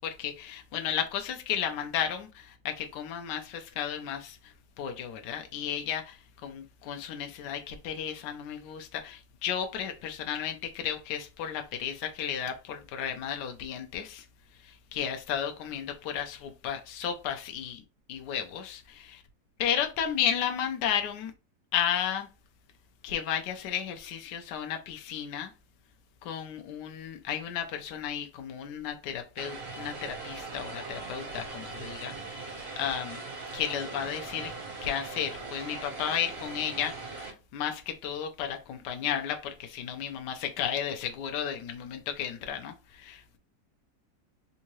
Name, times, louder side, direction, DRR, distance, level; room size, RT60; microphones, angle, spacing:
voice 1, 0.0-4.4 4.8-6.2 6.4-14.2 14.9-17.8 18.1-19.2 19.6-21.3 21.7-22.3 23.0-25.5 26.2-32.1 32.4-33.2 33.5-34.5 34.8-43.4, left 9 dB, 85° left, 1.2 m, -33 dB
Vehicle, 29.4-37.3, right 3 dB, 55° right, 1.5 m, -40 dB
3.6 x 2.7 x 3.0 m
omnidirectional pair, 1.8 m